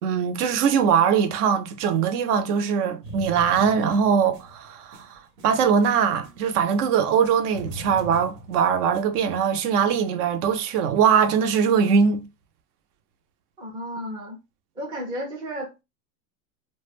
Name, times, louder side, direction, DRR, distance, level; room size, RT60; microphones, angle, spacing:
voice 1, 0.0-12.2, right 7 dB, 70° right, 0.7 m, -21 dB
sound 1, 3.0-6.8 7.1-9.0, right 1 dB, 90° right, 1.0 m, -41 dB
voice 2, 13.6-14.4 14.8-15.8, equal, 10° right, 0.3 m, -33 dB
2.2 x 2.2 x 3.3 m
supercardioid pair, 135°, 48 cm